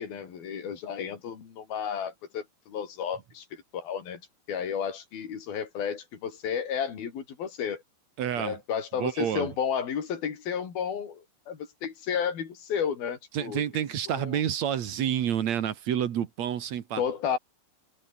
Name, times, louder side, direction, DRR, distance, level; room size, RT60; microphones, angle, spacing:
voice 1, 0.0-4.2 4.5-7.8 8.4-13.6 14.1-14.4 17.0-17.4, left 7 dB, 80° left, 5.5 m, -32 dB
voice 2, 8.2-8.6 9.0-9.5 13.3-17.0, right 9 dB, 55° right, 2.5 m, -29 dB
omnidirectional pair, 4.2 m